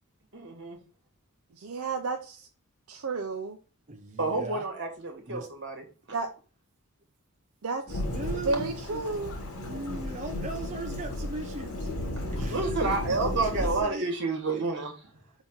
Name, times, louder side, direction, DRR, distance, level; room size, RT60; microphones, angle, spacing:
voice 1, 0.3-0.8 4.2-5.8 12.3-15.1, right 3 dB, 55° right, 2.1 m, -30 dB
voice 2, 1.6-2.5 2.9-3.6 6.1-6.3 7.6-8.0 8.4-9.3, right 3 dB, 70° right, 0.7 m, -32 dB
voice 3, 3.9-4.7 5.3-5.5 7.9-9.0 9.6-11.9 12.3-14.1, right 3 dB, 30° right, 0.6 m, -39 dB
Thunderstorm / Rain, 7.9-13.8, left 1 dB, 85° left, 1.9 m, -34 dB
5.7 x 4.1 x 4.0 m
head